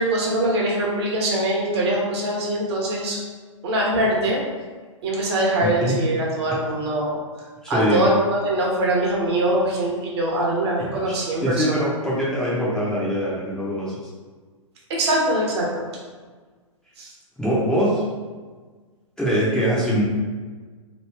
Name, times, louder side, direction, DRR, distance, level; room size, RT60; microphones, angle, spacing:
voice 1, 0.0-3.2 3.6-4.4 5.0-7.2 7.7-11.4 11.8-11.9 14.9-15.9 17.0-17.1, right 1 dB, 50° right, -2 dB, 0.9 m, -22 dB
voice 2, 5.6-6.0 6.5-6.6 7.6-8.0 10.8-11.1 11.4-13.9 17.4-18.0 19.2-20.0, equal, 5° left, -9 dB, 0.6 m, -23 dB
3.1 x 2.5 x 3.3 m, 1.4 s
figure-of-eight pair, 115°, 17 cm